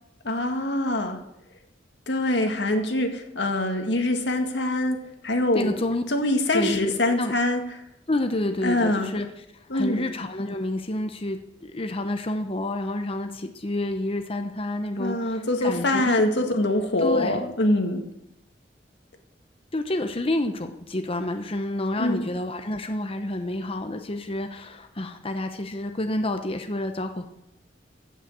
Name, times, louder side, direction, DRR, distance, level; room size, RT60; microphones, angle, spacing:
voice 1, 0.2-1.2 2.1-5.8 6.1-7.6 8.6-9.1 9.7-10.0 15.0-18.0 22.0-22.2, left 1 dB, 90° left, 4 dB, 2.0 m, -24 dB
voice 2, 5.5-6.0 6.5-7.3 8.1-9.3 9.5-16.2 17.0-17.4 19.7-27.2, left 1 dB, 35° left, 6 dB, 0.8 m, -29 dB
14.5 x 6.5 x 7.9 m, 0.83 s
head